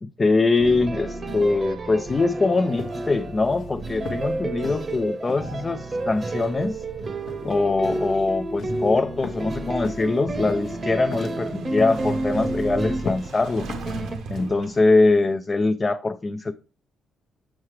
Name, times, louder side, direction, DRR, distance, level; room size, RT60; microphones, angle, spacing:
voice 1, 0.0-6.8 7.4-13.7 14.3-16.5, left 3 dB, 30° left, 0.4 m, -23 dB
sound 1, 0.6-14.2, right 2 dB, 35° right, 0.8 m, -30 dB
sound 2, 2.8-3.2 3.4-3.7 4.0-4.3 4.6-4.8 5.3-5.5 5.9-6.2 6.6-6.8 7.3-7.6 7.9-8.1 8.6-8.8 9.2-9.5 9.8-10.1 10.5-10.7 11.1-11.5 11.8-12.0 12.4-12.7 13.0-13.3 13.7-14.0 14.3-14.5, left 4 dB, 65° left, 0.9 m, -36 dB
Motorcycle / Engine starting, 9.3-15.1, right 5 dB, 80° right, 1.1 m, -38 dB
7.3 x 4.6 x 3.2 m
cardioid pair, 90°, 0 cm